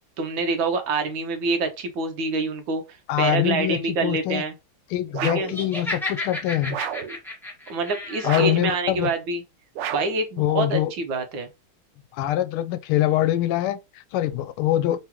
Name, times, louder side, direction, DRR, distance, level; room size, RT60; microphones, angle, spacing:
voice 1, 0.2-2.8 3.2-4.5 5.2-5.5 7.7-9.4 9.9-10.8 11.1-11.5, right 3 dB, 70° right, 1.5 m, -26 dB
voice 2, 3.1-4.4 4.9-6.8 8.2-9.1 10.4-10.9 12.1-15.0, left 13 dB, 85° left, 1.5 m, -24 dB
sound 1, 5.1-5.6 6.7-7.2 8.2-8.7 9.8-10.2, right 9 dB, 85° right, 1.5 m, -31 dB
Laughter, 5.5-8.5, left 2 dB, ahead, 1.0 m, -32 dB
3.8 x 3.5 x 2.9 m
omnidirectional pair, 2.4 m